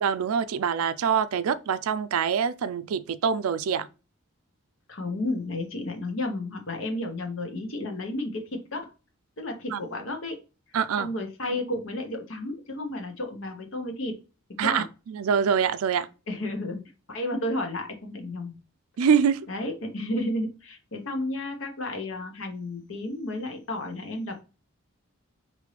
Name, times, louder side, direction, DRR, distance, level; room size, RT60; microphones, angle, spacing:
voice 1, 0.0-3.9 9.7-9.8 10.7-11.1 14.6-16.1 19.0-19.5, right 7 dB, 90° right, 0.4 m, -25 dB
voice 2, 4.9-8.9 9.4-10.4 11.0-14.2 14.6-14.9 16.3-16.8 17.1-18.5 19.5-24.3, left 1 dB, 70° left, 1.0 m, -32 dB
5.1 x 2.7 x 3.2 m
head